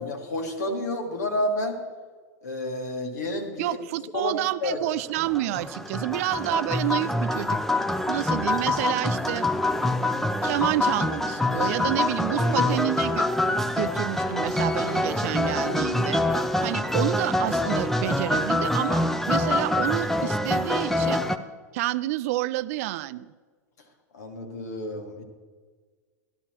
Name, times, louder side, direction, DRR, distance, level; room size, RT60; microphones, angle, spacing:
voice 1, 0.0-1.8 2.4-3.8 4.1-4.8 12.3-12.7 24.1-25.2, left 1 dB, 75° left, 4 dB, 1.6 m, -30 dB
voice 2, 3.6-7.6 8.1-9.5 10.4-21.2 21.7-23.3, right 16 dB, 55° right, 17 dB, 0.4 m, -29 dB
sound 1, 5.2-21.4, left 1 dB, 5° left, 0.5 m, -25 dB
13.5 x 12.0 x 2.9 m, 1.5 s
hypercardioid pair, 90°, 9 cm